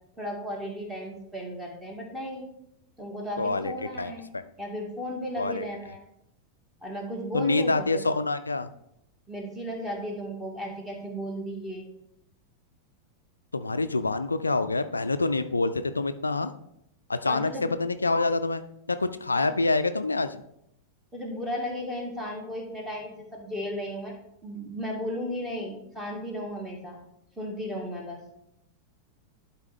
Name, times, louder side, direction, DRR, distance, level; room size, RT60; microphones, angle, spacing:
voice 1, 0.2-2.5 3.0-4.3 4.6-6.0 6.8-8.0 9.3-11.9 17.3-17.7 19.3-19.5 21.1-24.1 24.4-27.0 27.4-28.2, equal, 5° right, 0 dB, 2.0 m, -35 dB
voice 2, 3.4-3.7 4.0-4.4 5.4-5.6 7.3-8.7 13.5-16.5 17.1-18.6 18.9-20.4, left 3 dB, 80° left, 11 dB, 0.3 m, -26 dB
11.5 x 4.3 x 3.5 m, 0.78 s
figure-of-eight pair, 90°, 0 cm